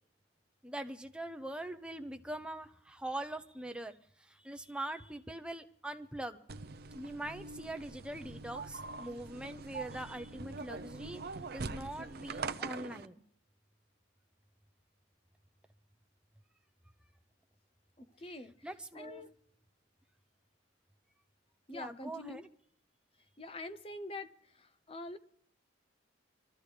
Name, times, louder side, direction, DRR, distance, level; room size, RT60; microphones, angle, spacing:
voice 1, 0.6-6.4 6.9-11.2 11.5-13.2 18.2-18.3 18.6-19.3 21.7-22.4, right 1 dB, 5° right, 0.7 m, -43 dB
sound 1, 6.5-13.0, right 4 dB, 50° right, 0.6 m, -43 dB
voice 2, 18.2-18.5 18.9-19.3 21.7-22.4 23.4-24.3 24.9-25.2, left 2 dB, 30° left, 0.7 m, -44 dB
25.0 x 13.5 x 3.3 m
head